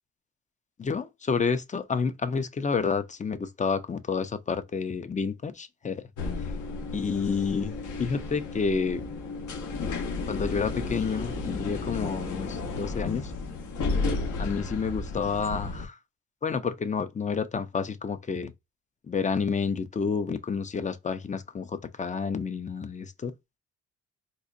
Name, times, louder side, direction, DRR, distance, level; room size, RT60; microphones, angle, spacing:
voice 1, 0.8-6.0 6.9-9.0 10.3-13.3 14.4-16.0 16.4-18.5 19.1-23.3, left 5 dB, 25° left, 0.5 m, -29 dB
sound 1, 6.2-15.9, left 3 dB, 75° left, 1.1 m, -33 dB
4.0 x 2.5 x 2.5 m
cardioid pair, 90°, 30 cm